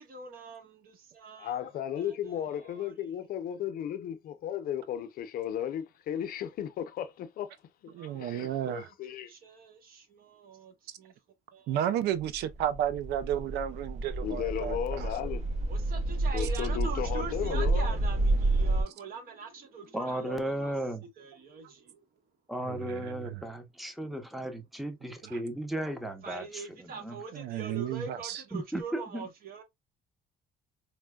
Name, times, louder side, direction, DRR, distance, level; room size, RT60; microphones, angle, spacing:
voice 1, 0.0-1.6 2.0-3.0 8.0-11.1 11.5-11.9 13.7-13.8 15.7-20.7 21.0-22.0 26.2-29.6, right 4 dB, 60° right, 1.1 m, -43 dB
voice 2, 1.4-7.5 8.0-9.3 14.2-15.5 16.3-18.0, left 10 dB, 60° left, 0.5 m, -35 dB
voice 3, 7.9-8.9 11.7-15.1 22.7-23.4 25.3-25.4 27.3-28.4, right 11 dB, 75° right, 0.5 m, -32 dB
sound 1, 12.2-18.8, right 2 dB, 40° right, 0.8 m, -29 dB
voice 4, 19.9-21.0 22.5-27.2 28.5-29.3, right 1 dB, ahead, 0.6 m, -35 dB
4.3 x 2.1 x 2.2 m
cardioid pair, 110°, 17 cm